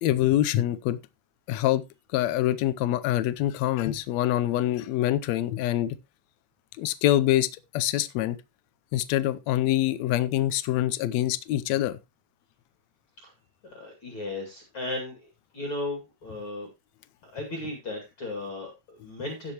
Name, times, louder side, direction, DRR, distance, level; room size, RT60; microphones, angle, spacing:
voice 1, 0.0-1.0 1.5-1.8 2.1-6.0 6.8-7.5 7.7-8.4 8.9-12.0, left 13 dB, 75° left, 1.6 m, -25 dB
voice 2, 13.6-15.2 15.5-16.7 17.2-19.5, left 2 dB, 40° left, 3.0 m, -35 dB
16.5 x 6.6 x 3.0 m
omnidirectional pair, 3.8 m